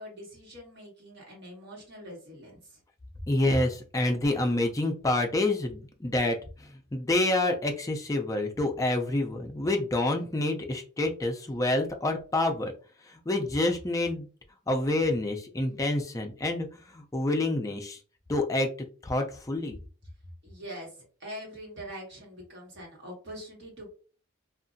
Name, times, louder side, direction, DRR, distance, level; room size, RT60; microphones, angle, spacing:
voice 1, 0.0-2.8 20.4-23.9, equal, 50° right, -3 dB, 1.4 m, -43 dB
voice 2, 3.3-12.7 13.0-14.3 14.7-16.7 16.9-18.0 18.3-18.7 19.0-19.8, left 2 dB, 15° left, 3 dB, 0.4 m, -28 dB
2.7 x 2.4 x 2.5 m, 0.38 s
head